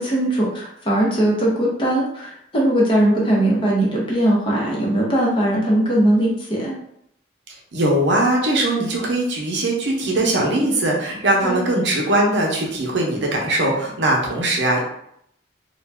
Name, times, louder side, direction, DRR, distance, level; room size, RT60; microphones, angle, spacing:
voice 1, 0.0-6.7 11.4-11.6, right 1 dB, 25° left, -4 dB, 0.7 m, -19 dB
voice 2, 7.7-14.8, right 1 dB, 65° right, -2 dB, 0.7 m, -20 dB
2.5 x 2.2 x 3.3 m, 0.73 s
head